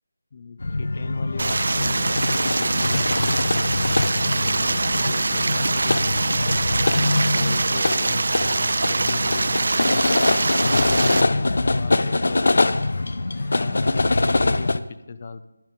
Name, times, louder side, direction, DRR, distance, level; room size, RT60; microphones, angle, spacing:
voice 1, 0.3-3.7 4.2-6.8 7.3-12.4 13.5-15.4, left 5 dB, 35° left, 13 dB, 0.7 m, -38 dB
sound 1, 0.6-14.8, left 2 dB, 70° left, 0.7 m, -23 dB
Stream, 1.4-11.2, right 3 dB, 60° right, 0.3 m, -23 dB
sound 2, 7.2-14.4, left 2 dB, 15° left, 2.0 m, -52 dB
15.0 x 11.0 x 3.8 m, 0.98 s
figure-of-eight pair, 170°, 0 cm